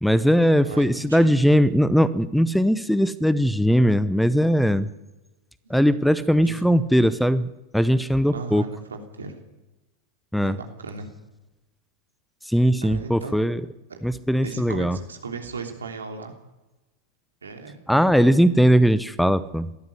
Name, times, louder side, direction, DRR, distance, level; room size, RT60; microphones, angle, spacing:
voice 1, 0.0-4.9 5.7-8.6 10.3-10.6 12.4-13.6 14.0-15.0 17.9-19.7, equal, ahead, 17 dB, 0.7 m, -19 dB
voice 2, 0.6-1.3 5.6-5.8 6.4-6.6 8.3-9.4 10.4-11.1 12.8-13.4 13.9-14.0 14.4-16.3 17.4-17.8, right 4 dB, 70° right, 3 dB, 3.2 m, -36 dB
19.5 x 13.5 x 9.9 m, 1.1 s
figure-of-eight pair, 90°, 0 cm